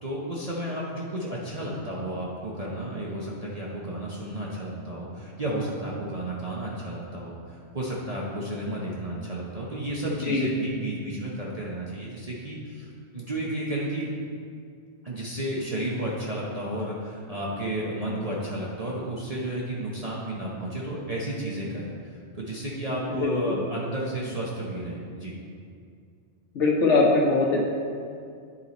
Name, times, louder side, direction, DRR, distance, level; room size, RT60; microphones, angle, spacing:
voice 1, 0.0-14.1 15.0-25.4, right 1 dB, 35° right, -5 dB, 0.9 m, -32 dB
voice 2, 10.1-10.4 23.2-23.6 26.5-27.7, left 3 dB, 85° left, -2 dB, 1.4 m, -22 dB
9.9 x 4.7 x 4.1 m, 2.3 s
omnidirectional pair, 1.2 m